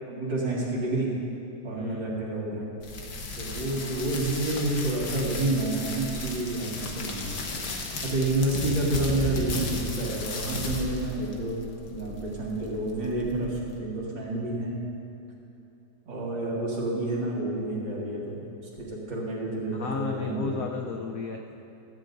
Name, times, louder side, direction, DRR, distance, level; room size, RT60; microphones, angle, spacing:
voice 1, 0.1-1.1 1.6-2.7 3.4-7.3 8.0-11.6 11.9-14.8 16.1-20.6, right 2 dB, 65° right, -5 dB, 2.8 m, -29 dB
voice 2, 1.7-2.1 19.7-21.6, left 5 dB, 75° left, 2 dB, 0.8 m, -33 dB
sound 1, 2.8-13.8, left 2 dB, 55° left, 1.5 m, -34 dB
16.0 x 13.5 x 2.6 m, 2.7 s
omnidirectional pair, 2.2 m